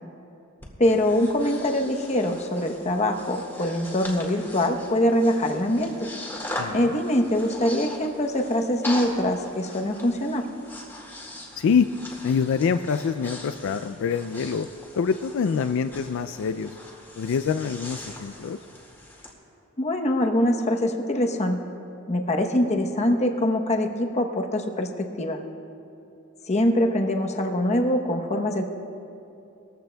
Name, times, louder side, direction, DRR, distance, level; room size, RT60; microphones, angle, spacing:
Breathing, 0.6-19.3, left 1 dB, 10° left, 1.9 m, -40 dB
voice 1, 0.8-6.1 6.7-10.5 19.8-21.6 22.1-25.4 26.5-28.7, left 1 dB, 30° left, 3 dB, 0.9 m, -23 dB
voice 2, 6.6-7.0 11.5-11.9 12.2-14.7 15.0-16.8 17.2-18.6, left 6 dB, 65° left, 9 dB, 0.3 m, -25 dB
21.0 x 14.5 x 2.3 m, 2.8 s
head